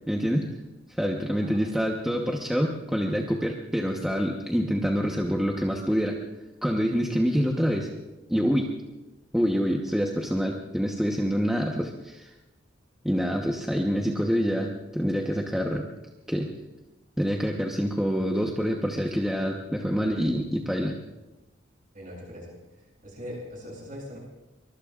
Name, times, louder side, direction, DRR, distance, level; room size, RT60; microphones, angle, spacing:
voice 1, 0.1-0.4 1.0-6.1 6.6-7.9 8.3-8.7 9.3-12.3 13.0-15.8 16.3-16.5 17.2-20.9, equal, ahead, -1 dB, 1.0 m, -26 dB
voice 2, 21.9-22.5 23.0-24.2, equal, 40° right, -3 dB, 8.0 m, -40 dB
24.0 x 22.5 x 2.5 m, 1.0 s
head